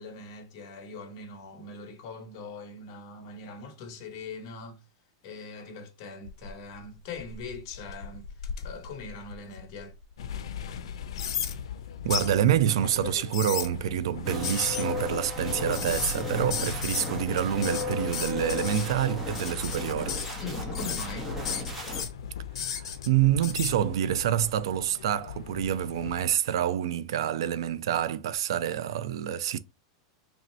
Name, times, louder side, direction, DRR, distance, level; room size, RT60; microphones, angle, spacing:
voice 1, 0.0-4.8 5.2-8.2 8.6-9.9 20.4-21.3, left 3 dB, 40° left, 0.9 m, -41 dB
sound 1, 6.2-6.8 7.2-9.8 10.3-10.4 11.2-11.5 12.1-12.3 13.1-13.7 14.4-14.8 15.7-16.2 16.5-17.1 17.4-18.9 19.3-19.8 20.1-20.4 20.7-21.1 21.4-22.1 22.5-23.1 23.4-23.7, left 8 dB, 70° left, 1.0 m, -34 dB
sound 2, 10.2-26.3, left 8 dB, 85° left, 0.5 m, -41 dB
voice 2, 12.0-20.2 22.7-29.6, right 10 dB, 65° right, 0.4 m, -27 dB
sound 3, 14.2-22.0, left 2 dB, 5° right, 0.9 m, -34 dB
3.2 x 2.6 x 4.2 m
supercardioid pair, 175°, 3 cm